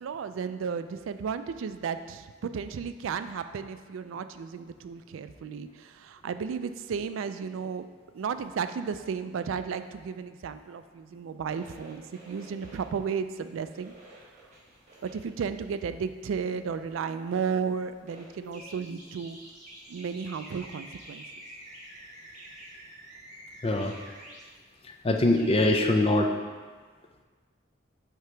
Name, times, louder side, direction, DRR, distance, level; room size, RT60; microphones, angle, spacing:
voice 1, 0.0-7.9 8.1-13.9 15.0-19.4 19.9-21.2, right 6 dB, 75° right, 10 dB, 0.3 m, -34 dB
sound 1, 11.4-25.9, right 1 dB, 35° right, 1.4 m, -49 dB
voice 2, 23.6-23.9 25.0-26.3, left 2 dB, 30° left, 3 dB, 0.4 m, -23 dB
8.0 x 2.9 x 4.5 m, 1.5 s
head